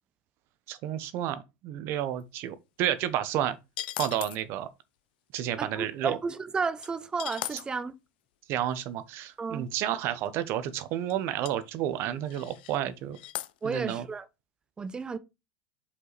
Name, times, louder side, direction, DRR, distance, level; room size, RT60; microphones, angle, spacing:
voice 1, 0.7-3.6 4.0-4.7 5.3-6.2 7.5-7.6 8.5-13.2 13.6-14.0, right 11 dB, 50° right, 0.9 m, -31 dB
sound 1, 3.8-4.4 6.8-6.9 7.1-7.6 10.2-10.3 10.6-10.7 11.1-11.2 11.4-11.5 12.3-12.8 13.1-13.5, left 15 dB, 80° left, 0.6 m, -37 dB
voice 2, 5.6-7.9 9.4-9.7 13.6-14.2 14.8-15.2, right 4 dB, 15° right, 0.7 m, -32 dB
5.5 x 4.9 x 4.1 m
supercardioid pair, 130°, 5 cm